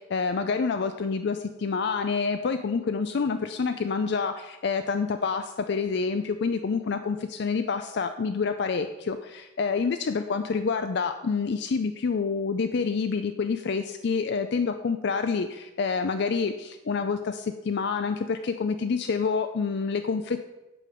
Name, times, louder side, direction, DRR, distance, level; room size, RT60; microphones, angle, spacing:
voice 1, 0.0-20.4, left 5 dB, 55° left, 7 dB, 0.4 m, -27 dB
8.4 x 5.0 x 6.8 m, 1.1 s
head